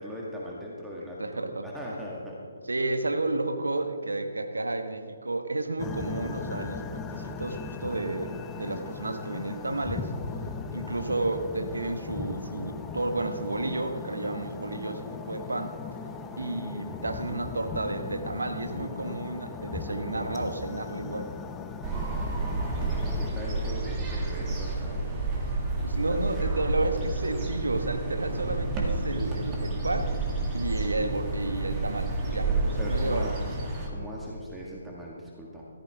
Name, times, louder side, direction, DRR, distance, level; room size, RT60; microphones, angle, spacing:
voice 1, 0.0-2.4 22.6-25.2 26.1-26.2 32.3-33.3 33.9-35.6, equal, 5° right, -4 dB, 1.8 m, -39 dB
voice 2, 1.2-1.6 2.7-10.1 10.7-15.8 16.4-21.3 25.8-30.2 30.5-32.5 32.8-33.3, right 2 dB, 80° right, 6 dB, 1.3 m, -31 dB
sound 1, 5.8-23.3, left 5 dB, 15° left, 0.6 m, -38 dB
sound 2, 21.8-33.9, right 2 dB, 20° right, 2.2 m, -30 dB
14.0 x 14.0 x 3.6 m, 2.2 s
figure-of-eight pair, 135°, 0 cm